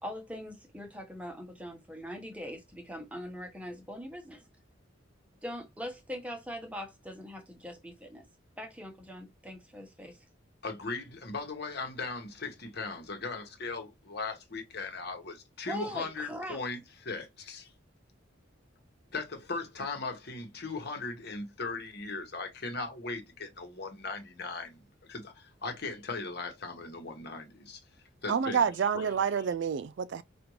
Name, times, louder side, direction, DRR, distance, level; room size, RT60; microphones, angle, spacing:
voice 1, 0.0-4.4 5.4-8.2 8.6-10.2 15.7-16.6, equal, 5° right, 0.9 m, -41 dB
voice 2, 10.6-17.7 19.1-24.8 25.1-27.8 28.2-28.7 28.9-29.1, left 3 dB, 55° left, 1.1 m, -38 dB
voice 3, 28.3-30.2, right 7 dB, 60° right, 0.3 m, -28 dB
5.0 x 2.5 x 3.0 m
head